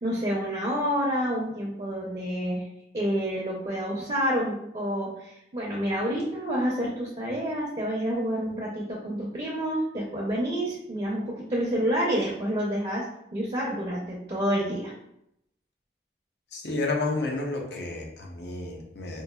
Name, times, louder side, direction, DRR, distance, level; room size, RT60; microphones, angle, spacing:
voice 1, 0.0-2.7 2.9-13.0 13.3-14.9, equal, 35° right, -4 dB, 0.6 m, -28 dB
voice 2, 16.5-19.2, left 2 dB, 70° left, 0 dB, 0.7 m, -31 dB
4.6 x 2.5 x 2.3 m, 0.80 s
head